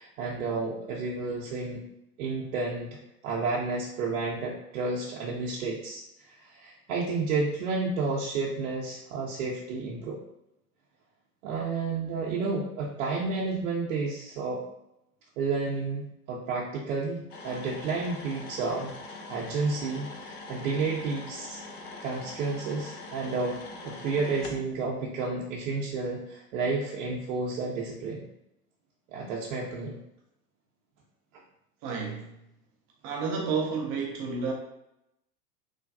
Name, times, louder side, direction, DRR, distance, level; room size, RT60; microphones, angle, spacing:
voice 1, 0.0-1.8 2.2-3.0 3.2-10.2 11.4-14.6 15.4-21.6 22.0-28.2 29.1-30.0, right 4 dB, 65° right, -4 dB, 0.7 m, -31 dB
sound 1, 17.3-24.6, left 3 dB, 70° left, 0.7 m, -43 dB
voice 2, 31.8-32.3 33.0-34.5, right 5 dB, 30° right, 0 dB, 0.4 m, -30 dB
3.2 x 2.2 x 2.5 m, 0.85 s
hypercardioid pair, 95°, 46 cm